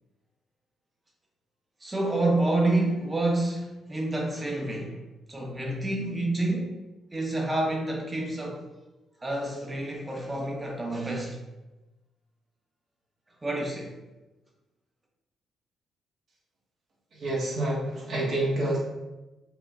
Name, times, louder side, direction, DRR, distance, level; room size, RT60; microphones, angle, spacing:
voice 1, 1.8-5.0 5.3-6.8 7.1-8.6 9.2-11.4 13.4-14.0, right 2 dB, 20° right, -1 dB, 0.9 m, -28 dB
voice 2, 17.2-18.8, right 1 dB, 60° right, -5 dB, 1.3 m, -28 dB
5.0 x 2.9 x 2.4 m, 1.1 s
cardioid pair, 90°, 0 cm